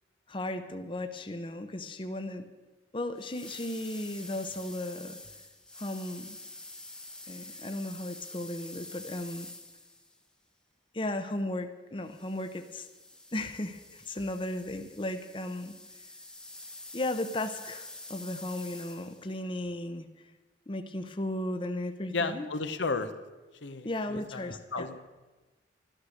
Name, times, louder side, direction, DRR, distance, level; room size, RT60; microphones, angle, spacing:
voice 1, 0.3-2.5 2.9-5.2 5.8-6.4 7.2-9.5 10.9-12.9 13.3-15.8 16.9-20.1 20.7-22.5 23.8-24.9, left 1 dB, 25° left, 8 dB, 0.7 m, -35 dB
sound 1, 3.2-10.2 12.1-19.3, left 2 dB, 5° left, 0.9 m, -47 dB
voice 2, 22.1-23.1 23.6-25.0, left 3 dB, 80° left, 9 dB, 1.0 m, -33 dB
13.0 x 12.5 x 6.4 m, 1.2 s
head